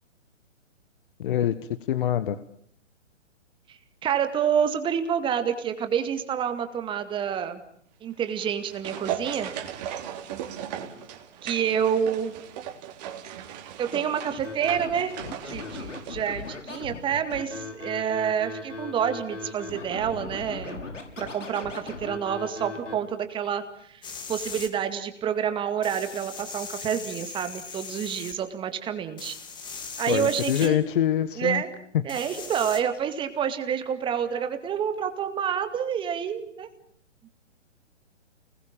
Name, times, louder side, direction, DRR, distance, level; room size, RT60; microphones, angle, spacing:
voice 1, 1.2-1.5 1.9-2.3 30.1-31.6, left 11 dB, 45° left, 13 dB, 1.4 m, -24 dB
voice 2, 3.7-7.6 8.0-9.5 11.4-12.3 13.8-15.1 15.4-20.8 21.2-24.0 24.3-29.4 30.0-30.8 31.4-31.8 32.0-36.7, right 8 dB, 15° right, 8 dB, 2.1 m, -28 dB
sound 1, 8.3-16.9 17.1-17.2, right 10 dB, 35° right, 3.5 m, -37 dB
Scratching (performance technique), 14.4-22.9, left 3 dB, 85° left, 6.7 m, -38 dB
sound 2, 24.0-24.7 25.8-28.3 29.2-30.7 32.1-32.8, left 5 dB, 10° left, 2.5 m, -39 dB
29.5 x 21.0 x 8.8 m, 0.66 s
hypercardioid pair, 140°, 37 cm